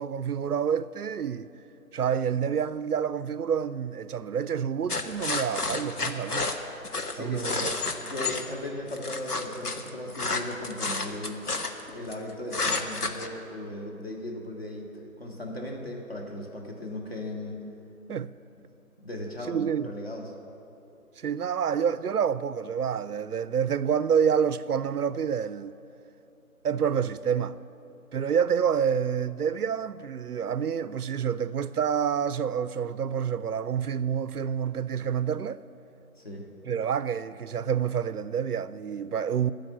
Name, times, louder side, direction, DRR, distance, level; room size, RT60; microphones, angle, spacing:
voice 1, 0.0-1.5 1.9-6.5 7.2-7.8 18.1-18.3 19.5-19.9 21.2-25.8 26.6-27.6 28.1-35.6 36.6-39.5, right 7 dB, 90° right, 0.6 m, -28 dB
sound 1, 4.9-8.4 8.9-12.1 12.5-13.3, left 3 dB, 90° left, 1.3 m, -30 dB
voice 2, 7.1-11.4 11.9-14.9 15.2-17.7 19.0-20.3 36.2-36.5, left 1 dB, 40° left, 1.9 m, -37 dB
15.0 x 5.3 x 9.6 m
figure-of-eight pair, 175°, 44 cm